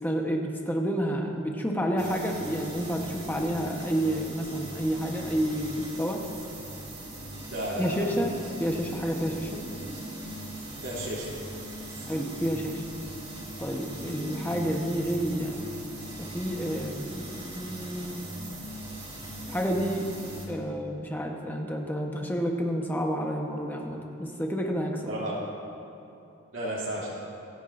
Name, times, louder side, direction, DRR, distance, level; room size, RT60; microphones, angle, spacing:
voice 1, 0.0-6.2 7.8-8.3 8.6-9.6 12.1-12.8 13.6-15.6 16.2-18.2 19.5-20.1 20.5-25.2, equal, 10° left, 1 dB, 1.0 m, -30 dB
sound 1, 2.0-20.4, right 1 dB, 25° right, 3.0 m, -40 dB
voice 2, 7.5-8.1 10.8-11.2 11.9-12.2 13.9-14.4 25.1-25.3 26.5-27.1, right 1 dB, 60° right, -6 dB, 2.8 m, -34 dB
27.0 x 9.9 x 2.6 m, 2.9 s
head